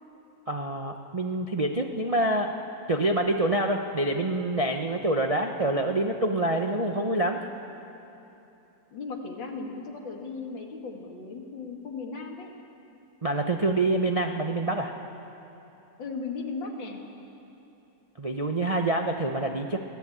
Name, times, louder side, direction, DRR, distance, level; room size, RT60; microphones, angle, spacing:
voice 1, 0.5-2.5 2.9-7.4 13.2-14.9 18.2-19.8, right 1 dB, 35° right, 3 dB, 0.5 m, -26 dB
voice 2, 8.9-12.6 16.0-17.0, left 4 dB, 80° left, 1 dB, 2.8 m, -36 dB
24.0 x 16.5 x 8.6 m, 3.0 s
omnidirectional pair, 2.0 m